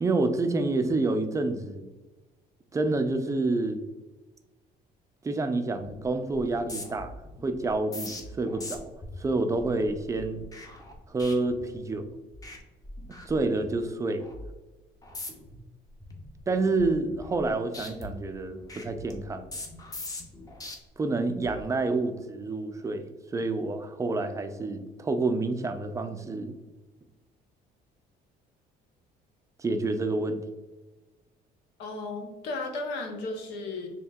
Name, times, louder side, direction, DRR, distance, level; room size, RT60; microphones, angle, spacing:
voice 1, 0.0-1.9 2.7-3.8 5.2-7.1 7.4-8.8 9.2-10.4 11.1-12.0 13.2-14.3 16.5-19.6 21.0-23.1 23.3-26.5 29.6-30.4, right 3 dB, 20° right, 7 dB, 0.4 m, -28 dB
sound 1, 5.8-6.0 6.3-12.0 12.3-12.6 12.8-13.8 14.2-14.5 15.0-15.6 16.0-17.5 17.7-20.7 21.3-21.6, left 2 dB, 20° left, 0.7 m, -42 dB
voice 2, 31.8-33.9, left 2 dB, 90° left, 3 dB, 0.8 m, -34 dB
4.3 x 2.9 x 2.3 m, 1.1 s
cardioid pair, 110°, 17 cm